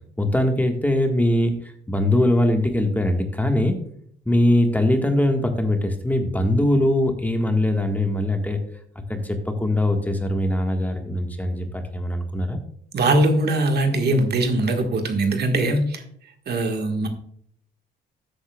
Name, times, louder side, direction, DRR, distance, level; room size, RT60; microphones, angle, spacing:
voice 1, 0.2-3.8 4.2-8.6 9.1-12.6, left 1 dB, 10° left, 4 dB, 1.5 m, -21 dB
voice 2, 12.9-16.0 16.5-17.1, right 2 dB, 55° right, 4 dB, 1.6 m, -21 dB
12.5 x 8.5 x 2.3 m, 0.64 s
cardioid pair, 90°, 20 cm